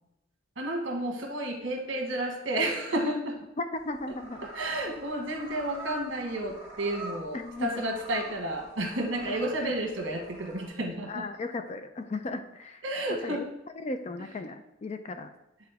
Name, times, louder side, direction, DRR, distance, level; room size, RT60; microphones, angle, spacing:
voice 1, 0.6-3.4 4.4-11.2 12.8-13.4, right 1 dB, 65° right, 2 dB, 1.3 m, -31 dB
voice 2, 3.6-4.5 7.3-7.9 9.3-9.4 9.6-9.7 11.1-12.8 13.2-13.4 13.8-15.3, left 2 dB, 35° left, 8 dB, 0.4 m, -36 dB
sound 1, 3.7-10.7, right 1 dB, 15° right, 1.4 m, -45 dB
9.5 x 3.8 x 3.4 m, 0.87 s
head